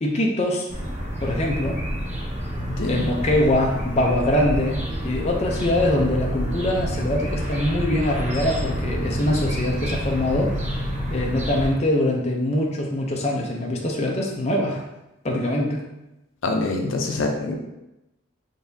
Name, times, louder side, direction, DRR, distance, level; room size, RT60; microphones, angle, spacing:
voice 1, 0.0-0.7 1.2-1.8 2.9-10.6 11.1-14.8 15.2-15.8, left 1 dB, 35° left, -1 dB, 0.5 m, -23 dB
sound 1, 0.7-11.7, equal, 35° right, 0.7 m, -28 dB
voice 2, 2.6-3.1 16.4-17.6, left 2 dB, 80° left, 2 dB, 0.5 m, -25 dB
3.9 x 3.4 x 2.7 m, 0.92 s
head